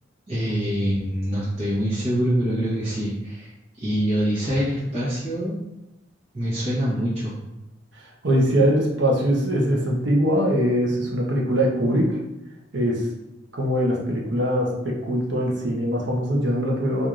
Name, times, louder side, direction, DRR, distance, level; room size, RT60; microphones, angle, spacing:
voice 1, 0.3-3.5 3.8-5.6 6.3-7.4, equal, 35° right, -10 dB, 0.9 m, -25 dB
voice 2, 8.2-12.2 12.7-13.1 13.5-17.1, equal, 75° right, -2 dB, 0.8 m, -22 dB
4.5 x 2.6 x 2.5 m, 0.96 s
head